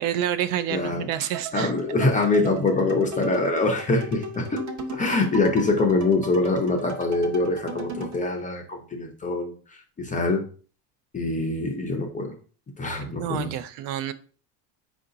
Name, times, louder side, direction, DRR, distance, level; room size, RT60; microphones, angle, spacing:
voice 1, 0.0-1.7 13.0-14.1, right 10 dB, 75° right, 11 dB, 0.6 m, -28 dB
voice 2, 0.7-1.1 1.5-4.6 4.9-10.4 11.1-12.4 12.8-13.5, left 2 dB, 15° left, 2 dB, 0.4 m, -24 dB
sound 1, 1.1-8.2, right 2 dB, 35° right, 0.7 m, -37 dB
4.7 x 2.6 x 3.8 m, 0.41 s
cardioid pair, 130°, 49 cm